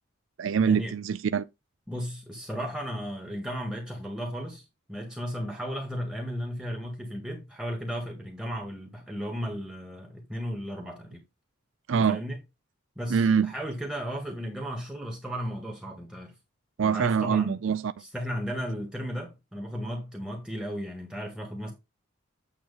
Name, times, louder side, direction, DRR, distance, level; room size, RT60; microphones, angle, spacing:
voice 1, 0.4-1.5 11.9-12.2 13.1-13.5 16.8-17.9, right 6 dB, 75° right, 0.4 m, -24 dB
voice 2, 1.9-11.2 12.0-12.4 12.9-16.3 16.8-17.6 18.0-21.7, equal, 5° right, 1.7 m, -35 dB
8.8 x 3.0 x 5.5 m
head